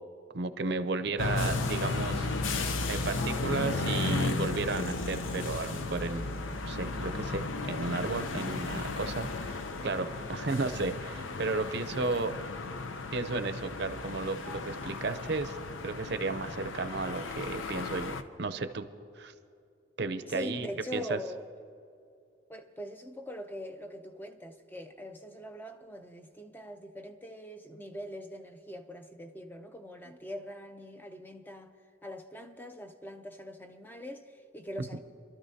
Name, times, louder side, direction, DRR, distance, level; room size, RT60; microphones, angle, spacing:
voice 1, 0.3-2.3 2.9-6.3 6.7-12.4 13.1-15.6 15.8-18.9 19.2-19.3 20.0-21.2, right 3 dB, 60° right, 0.6 m, -33 dB
sound 1, 1.2-18.2, left 3 dB, 85° left, 0.7 m, -34 dB
voice 2, 20.3-21.5 22.5-31.7 32.0-35.0, equal, 10° left, 0.5 m, -42 dB
26.0 x 12.5 x 2.8 m
head